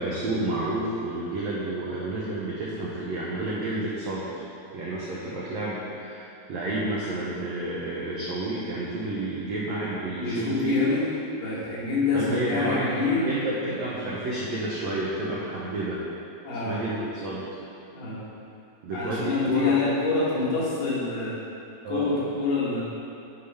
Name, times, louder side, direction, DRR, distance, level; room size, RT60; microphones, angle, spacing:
voice 1, 0.0-4.5 4.7-10.7 12.1-16.0 16.7-17.5 18.8-19.8 21.8-22.2, right 1 dB, 90° right, -6 dB, 1.5 m, -30 dB
voice 2, 10.1-11.1 11.4-13.3 16.4-16.9 17.9-18.2 18.9-21.4 21.9-22.8, left 3 dB, 75° left, -8 dB, 3.7 m, -26 dB
10.5 x 4.0 x 5.6 m, 2.6 s
omnidirectional pair, 4.5 m